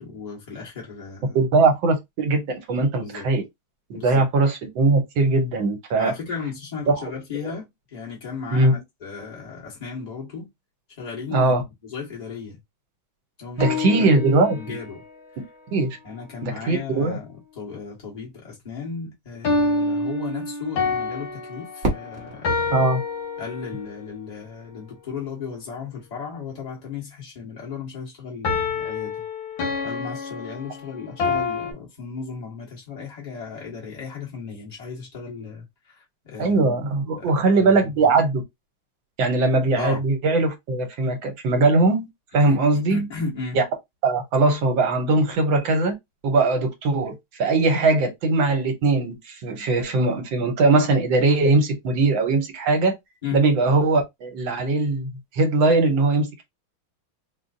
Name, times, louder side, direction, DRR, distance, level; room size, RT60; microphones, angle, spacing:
voice 1, 0.0-1.4 3.0-3.3 3.9-4.2 6.0-10.5 11.0-11.5 11.8-12.6 13.4-14.1 14.5-15.0 16.0-22.8 23.4-29.2 29.8-35.9 36.2-36.6 37.0-37.9 39.7-40.0 42.3-43.6 53.2-53.4, left 5 dB, 20° left, 1.3 m, -35 dB
voice 2, 1.3-3.4 3.9-6.1 6.9-7.0 7.4-7.5 8.5-8.8 11.3-11.6 13.6-14.6 15.7-16.0 16.4-17.2 22.7-23.0 36.4-38.4 39.2-42.1 42.3-43.1 43.5-43.6 44.0-45.9 46.2-52.9 53.3-56.4, right 3 dB, 75° right, 1.6 m, -20 dB
sound 1, 13.6-15.0 19.4-24.0 28.4-31.7, left 3 dB, 75° left, 1.8 m, -27 dB
Fireworks, 21.8-24.7, right 1 dB, 45° right, 1.0 m, -32 dB
4.0 x 2.4 x 2.5 m
omnidirectional pair, 2.2 m